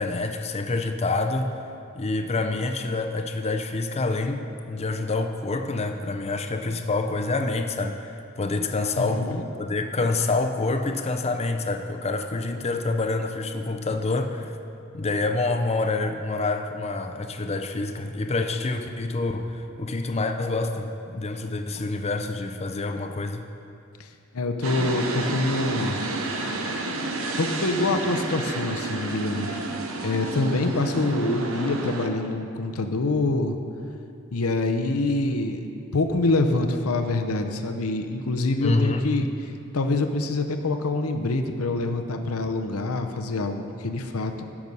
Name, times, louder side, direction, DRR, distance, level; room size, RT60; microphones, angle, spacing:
voice 1, 0.0-1.5 2.0-14.5 14.9-23.4 38.6-39.0, left 3 dB, 30° left, 6 dB, 0.5 m, -27 dB
voice 2, 9.0-9.4 24.0-24.1 24.3-26.0 27.4-29.6 30.0-33.6 34.3-39.3 39.7-44.4, left 2 dB, 90° left, 6 dB, 0.7 m, -25 dB
sound 1, 24.6-32.1, right 2 dB, 70° right, 0.9 m, -30 dB
13.5 x 6.1 x 5.4 m, 2.6 s
head